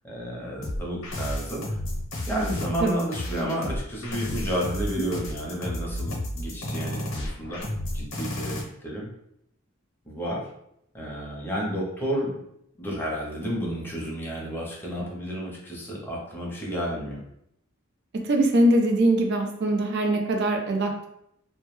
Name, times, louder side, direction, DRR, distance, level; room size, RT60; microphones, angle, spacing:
voice 1, 0.0-1.8 2.3-7.6 7.9-9.1 10.1-10.5 10.9-12.3 12.8-17.2, equal, 10° left, -4 dB, 0.6 m, -31 dB
sound 1, 0.6-8.6, left 1 dB, 75° left, 0.7 m, -32 dB
voice 2, 18.2-21.1, right 1 dB, 55° right, 3 dB, 0.4 m, -22 dB
2.2 x 2.1 x 3.0 m, 0.76 s
head